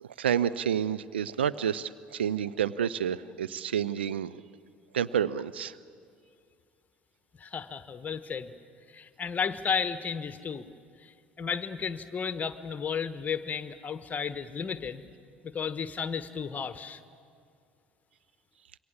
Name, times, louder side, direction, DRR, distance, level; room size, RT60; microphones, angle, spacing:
voice 1, 0.0-4.4 4.9-5.8, right 9 dB, 75° right, 15 dB, 0.5 m, -29 dB
voice 2, 7.4-8.5 8.9-10.7 11.0-15.0 15.4-17.0, left 6 dB, 25° left, 12 dB, 1.2 m, -33 dB
27.0 x 22.5 x 7.3 m, 2.4 s
figure-of-eight pair, 60°, 6 cm